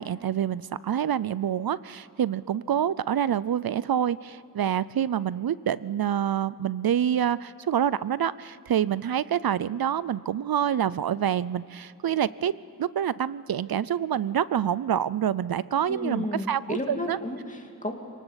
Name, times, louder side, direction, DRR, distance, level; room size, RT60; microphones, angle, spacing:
voice 1, 0.0-12.5 12.8-16.8 17.1-17.2, right 9 dB, 70° right, 18 dB, 0.5 m, -27 dB
voice 2, 15.9-17.9, left 1 dB, 20° left, 2 dB, 2.5 m, -32 dB
25.5 x 18.5 x 8.1 m, 2.6 s
wide cardioid pair, 95°, 37 cm